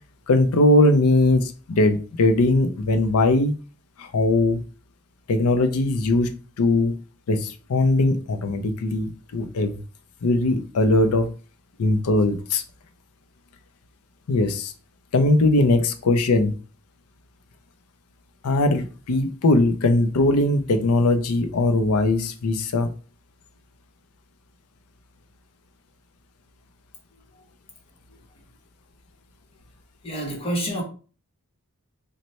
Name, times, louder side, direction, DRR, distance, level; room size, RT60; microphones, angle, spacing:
voice 1, 0.3-3.5 4.0-4.6 5.3-7.0 7.3-9.8 10.2-11.3 11.8-12.6 14.3-14.7 15.1-16.5 18.4-22.9, left 2 dB, 75° left, 0.5 m, -20 dB
voice 2, 30.0-30.8, right 1 dB, 25° left, 0.9 m, -28 dB
3.1 x 2.1 x 4.1 m
head